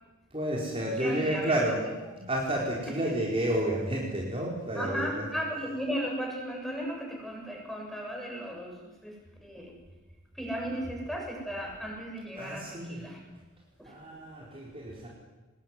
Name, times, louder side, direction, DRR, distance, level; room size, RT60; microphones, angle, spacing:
voice 1, 0.3-1.8 2.3-5.2 12.4-13.0 13.9-15.1, right 1 dB, 25° right, -3 dB, 4.5 m, -30 dB
voice 2, 1.0-1.5 2.1-2.2 2.9-3.1 4.7-8.8 9.0-9.1 9.4-9.7 10.4-13.2 13.8-13.9, equal, ahead, 0 dB, 7.3 m, -35 dB
24.5 x 21.0 x 9.7 m, 1.2 s
head